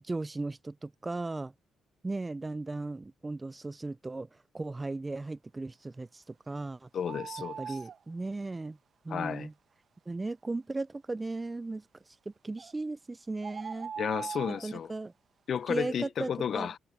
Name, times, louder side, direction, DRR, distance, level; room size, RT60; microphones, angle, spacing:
voice 1, 0.0-1.5 2.0-4.3 4.5-6.9 7.6-8.8 9.0-9.5 10.1-11.8 12.3-13.9 14.6-15.1 15.7-16.7, right 3 dB, 20° right, 0.3 m, -36 dB
voice 2, 6.9-7.8 9.1-9.5 14.0-14.9 15.5-16.8, left 8 dB, 55° left, 0.6 m, -33 dB
sound 1, 7.0-8.0 12.6-12.7 13.4-14.7, right 7 dB, 50° right, 1.1 m, -40 dB
cardioid pair, 90°, 0 cm